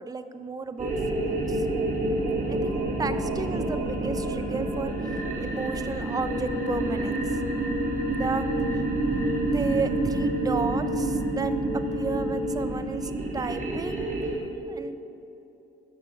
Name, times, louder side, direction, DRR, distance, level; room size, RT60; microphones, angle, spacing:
voice 1, 0.0-1.7 2.5-7.4 8.1-8.5 8.7-8.8 9.4-14.4 14.7-14.9, right 4 dB, 20° right, 10 dB, 0.4 m, -33 dB
sound 1, 0.8-14.4, right 2 dB, 40° right, 1.3 m, -28 dB
sound 2, 6.2-12.7, left 2 dB, 40° left, 0.7 m, -35 dB
6.7 x 4.6 x 6.5 m, 2.9 s
cardioid pair, 90°, 20 cm